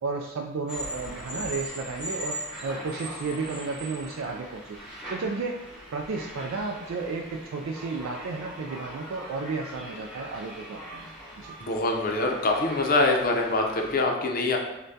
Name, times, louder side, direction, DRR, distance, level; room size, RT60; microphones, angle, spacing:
voice 1, 0.0-5.6 5.9-11.1 11.4-11.5, right 4 dB, 70° right, 1 dB, 0.3 m, -33 dB
sound 1, 0.7-14.0, equal, 5° right, 0.9 m, -40 dB
voice 2, 11.6-14.6, left 2 dB, 45° left, 1 dB, 0.6 m, -24 dB
6.6 x 2.2 x 2.7 m, 0.97 s
head